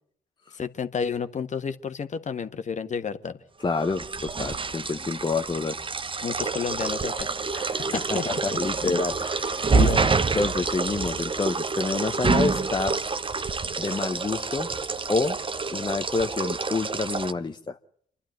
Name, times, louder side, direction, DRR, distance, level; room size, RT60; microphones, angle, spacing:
voice 1, 0.5-3.4 6.2-7.3 7.9-8.4 8.8-9.0 9.8-10.1, left 6 dB, 40° left, 9 dB, 1.5 m, -31 dB
voice 2, 3.6-5.8 7.5-13.0 13.8-14.7 15.1-15.4 15.7-17.8, left 4 dB, 25° left, 6 dB, 1.0 m, -28 dB
sound 1, 3.7-17.3, right 4 dB, 30° right, 1.2 m, -27 dB
28.0 x 11.5 x 9.2 m, 0.65 s
hypercardioid pair, 50°, 19 cm